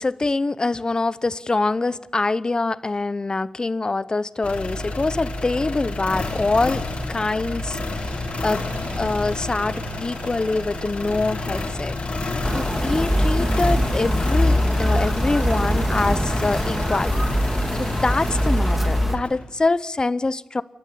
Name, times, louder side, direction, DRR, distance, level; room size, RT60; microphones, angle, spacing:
voice 1, 0.0-8.6 9.0-17.2 17.5-20.6, left 3 dB, 35° left, 0.7 m, -25 dB
sound 1, 4.4-19.5, left 2 dB, 65° left, 3.4 m, -29 dB
sound 2, 6.0-12.5, right 5 dB, 80° right, 1.6 m, -44 dB
sound 3, 12.4-19.2, equal, 10° right, 2.0 m, -22 dB
28.5 x 12.0 x 8.4 m
cardioid pair, 60°, 2 cm